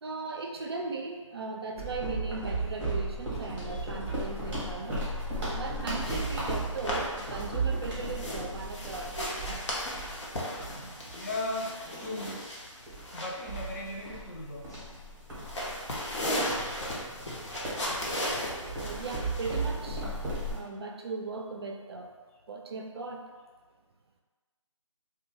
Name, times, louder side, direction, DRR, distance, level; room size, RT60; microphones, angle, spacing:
voice 1, 0.0-9.7 18.8-20.1 20.5-22.1 22.5-23.3, right 3 dB, 50° right, 2 dB, 0.4 m, -38 dB
sound 1, 1.8-11.6 12.1-12.3 12.9-20.5, right 2 dB, 10° right, 0.6 m, -36 dB
sound 2, 6.0-20.6, equal, 60° left, 0.7 m, -37 dB
voice 2, 10.7-12.6 13.1-14.9, left 2 dB, 35° left, -3 dB, 0.4 m, -38 dB
2.5 x 2.2 x 2.9 m, 1.3 s
figure-of-eight pair, 160°, 17 cm